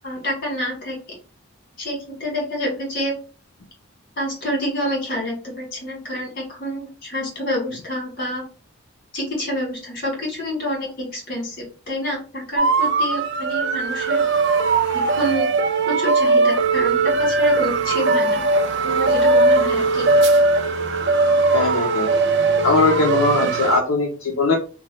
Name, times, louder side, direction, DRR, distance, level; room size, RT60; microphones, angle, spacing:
voice 1, 0.0-1.0 1.8-3.2 4.2-8.4 9.1-11.6 11.9-14.2 15.1-15.5 15.9-18.4 18.8-20.1, equal, 40° left, -3 dB, 1.6 m, -27 dB
sound 1, 12.6-23.8, right 3 dB, 55° right, 0.3 m, -19 dB
voice 2, 21.5-22.1 22.6-24.5, left 3 dB, 75° left, 0 dB, 0.5 m, -20 dB
3.0 x 2.2 x 2.8 m, 0.36 s
head